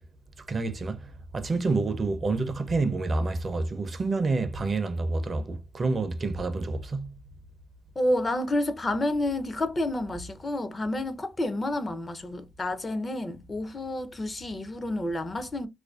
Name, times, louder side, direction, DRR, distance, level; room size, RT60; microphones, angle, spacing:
voice 1, 0.5-7.1, right 3 dB, 35° right, 0.4 m, -28 dB
voice 2, 8.0-15.7, left 1 dB, 30° left, 0.4 m, -29 dB
2.4 x 2.2 x 2.3 m
cardioid pair, 90°, 0 cm